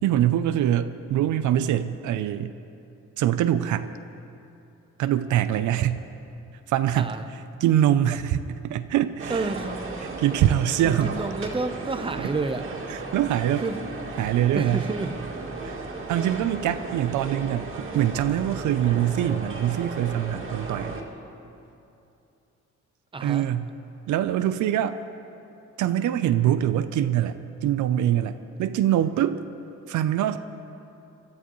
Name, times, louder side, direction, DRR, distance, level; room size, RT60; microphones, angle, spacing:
voice 1, 0.0-2.5 3.2-3.9 5.0-6.0 6.7-9.5 10.0-11.2 12.2-12.3 12.9-13.7 14.2-14.9 15.6-15.8 16.1-21.0 23.2-23.7 24.1-25.0 25.8-29.4 29.9-30.4, right 11 dB, 80° right, 11 dB, 0.6 m, -24 dB
voice 2, 6.9-7.2 9.3-9.8 10.8-12.6 13.6-13.8 14.5-15.1 23.1-23.5, right 3 dB, 15° right, 8 dB, 0.8 m, -29 dB
sound 1, 9.2-21.0, right 3 dB, 45° right, 2.2 m, -35 dB
24.5 x 13.0 x 3.1 m, 2.8 s
cardioid pair, 90°, 30 cm